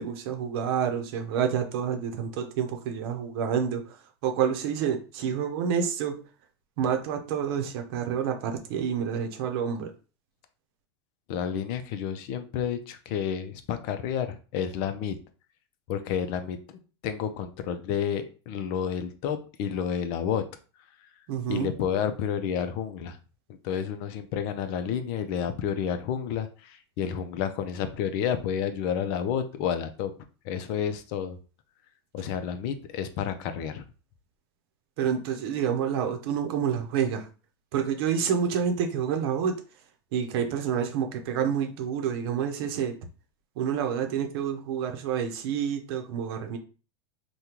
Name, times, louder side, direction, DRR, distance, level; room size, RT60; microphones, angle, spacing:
voice 1, 0.0-6.2 6.8-9.9 21.3-21.7 35.0-37.3 37.7-39.6 40.1-43.0 43.6-46.6, right 7 dB, 65° right, 5 dB, 0.7 m, -28 dB
voice 2, 11.3-15.2 15.9-20.4 21.5-23.2 23.6-30.1 30.4-31.4 32.1-33.8, left 8 dB, 55° left, 9 dB, 0.5 m, -30 dB
3.5 x 2.2 x 2.9 m, 0.36 s
hypercardioid pair, 115°, 14 cm